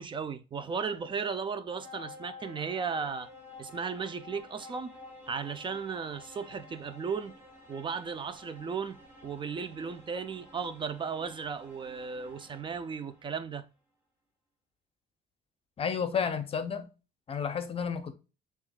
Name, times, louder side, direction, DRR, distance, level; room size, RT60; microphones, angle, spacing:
voice 1, 0.0-3.3 3.6-4.9 5.3-7.4 7.7-13.7, right 5 dB, 30° right, 0.4 m, -35 dB
sound 1, 0.6-13.4, left 3 dB, 10° right, 1.2 m, -51 dB
voice 2, 15.8-16.9 17.3-18.1, left 6 dB, 35° left, 0.7 m, -31 dB
6.9 x 2.4 x 2.2 m
cardioid pair, 110°, 17 cm